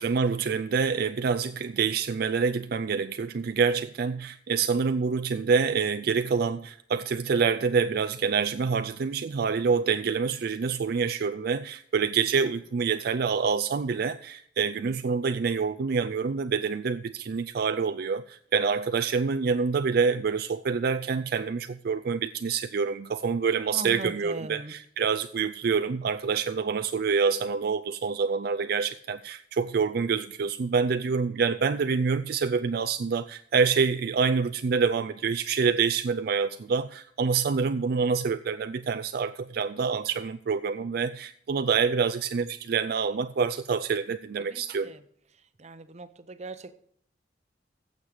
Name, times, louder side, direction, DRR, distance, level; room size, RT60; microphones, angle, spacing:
voice 1, 0.0-44.9, right 5 dB, 60° right, 0.4 m, -26 dB
voice 2, 23.7-24.7 44.5-45.0 45.6-46.7, right 2 dB, 40° right, 0.8 m, -39 dB
15.0 x 7.4 x 4.9 m
head